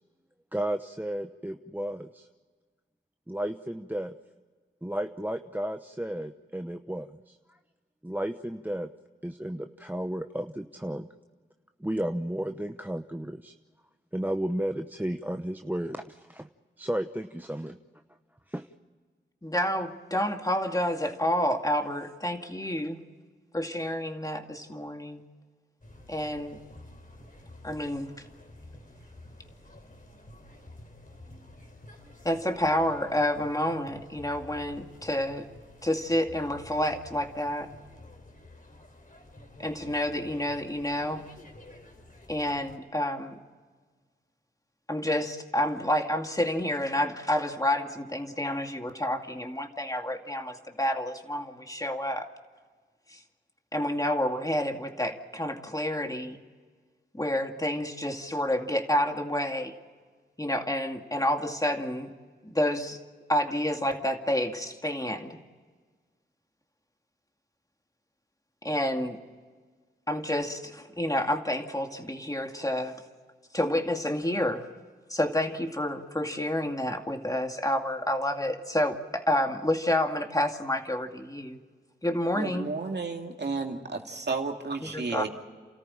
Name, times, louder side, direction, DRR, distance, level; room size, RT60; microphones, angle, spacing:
voice 1, 0.5-2.3 3.3-4.2 4.8-7.3 8.0-8.9 9.2-11.1 11.8-13.5 14.1-16.5 16.8-17.8 18.5-18.7, right 1 dB, 10° right, 8 dB, 0.9 m, -33 dB
voice 2, 19.4-23.0 23.5-25.2 26.1-26.6 27.6-28.1 32.2-35.5 35.8-37.7 39.6-41.2 42.3-43.4 44.9-52.3 53.1-53.2 53.7-56.4 57.1-59.7 60.4-62.1 62.4-63.0 63.3-65.4 68.6-69.2 70.1-73.0 73.5-74.7 75.1-81.6 82.0-82.7 84.8-85.2, left 1 dB, 15° left, 5 dB, 2.3 m, -29 dB
sound 1, 25.8-42.8, left 1 dB, 45° left, 3.6 m, -50 dB
voice 3, 82.3-85.3, right 4 dB, 60° right, 3 dB, 2.5 m, -32 dB
29.5 x 14.0 x 8.7 m, 1.5 s
cardioid pair, 40°, 20 cm